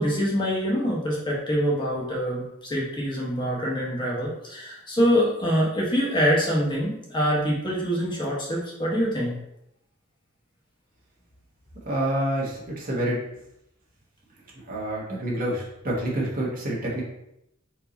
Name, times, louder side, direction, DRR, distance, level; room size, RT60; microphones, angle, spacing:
voice 1, 0.0-9.4, equal, 25° left, -4 dB, 1.0 m, -25 dB
voice 2, 11.8-13.2 14.7-17.0, right 1 dB, 45° right, -4 dB, 1.3 m, -27 dB
4.6 x 2.8 x 4.0 m, 0.82 s
head